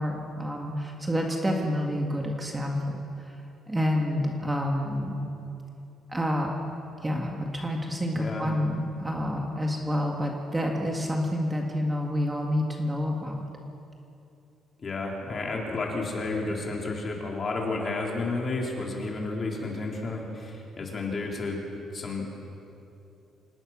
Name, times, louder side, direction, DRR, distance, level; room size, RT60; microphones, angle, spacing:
voice 1, 0.0-2.8 3.2-3.3 3.7-5.2 6.1-6.5 7.0-13.5, equal, 10° right, 0 dB, 1.7 m, -28 dB
voice 2, 8.1-8.4 14.8-21.6 21.9-22.4, left 3 dB, 30° left, -1 dB, 3.8 m, -31 dB
26.5 x 19.0 x 6.1 m, 2.8 s
cardioid pair, 150°, 0 cm